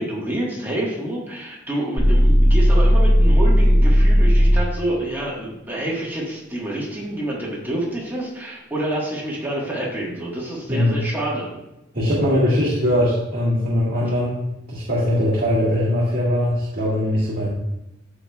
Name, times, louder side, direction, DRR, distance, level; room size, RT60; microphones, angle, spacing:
voice 1, 0.0-11.5, right 1 dB, 10° right, -5 dB, 1.4 m, -27 dB
sound 1, 2.0-4.8, equal, 70° left, 1.7 m, -14 dB
voice 2, 11.9-17.5, left 1 dB, 50° right, -7 dB, 1.8 m, -21 dB
13.5 x 4.9 x 2.3 m, 0.93 s
head